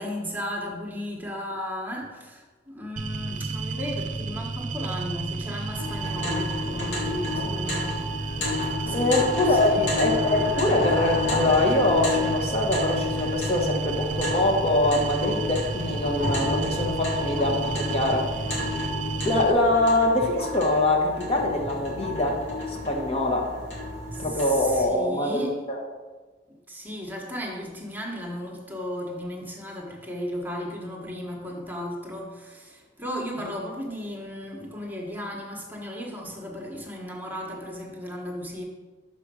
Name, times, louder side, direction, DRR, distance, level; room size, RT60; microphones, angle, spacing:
voice 1, 0.0-8.0 8.9-10.0 24.1-25.6 26.7-38.6, equal, 10° right, -1 dB, 1.1 m, -35 dB
sound 1, 3.0-19.5, right 3 dB, 45° right, 0.6 m, -32 dB
sound 2, 5.8-24.8, left 2 dB, 85° left, 2.0 m, -31 dB
voice 2, 8.9-18.4 19.2-22.4 22.7-23.5 24.2-25.8, left 2 dB, 35° left, 0 dB, 1.0 m, -23 dB
6.0 x 4.9 x 6.2 m, 1.3 s
head